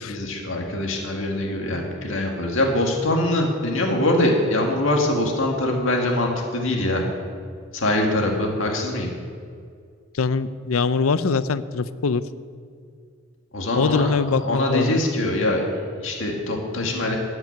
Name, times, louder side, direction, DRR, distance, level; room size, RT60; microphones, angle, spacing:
voice 1, 0.0-7.0 7.7-9.1 13.5-14.1 14.4-17.2, left 1 dB, 70° left, 1 dB, 1.9 m, -23 dB
voice 2, 10.1-12.2 13.8-15.0, left 4 dB, 90° left, 14 dB, 0.6 m, -22 dB
14.0 x 6.0 x 9.3 m, 2.2 s
head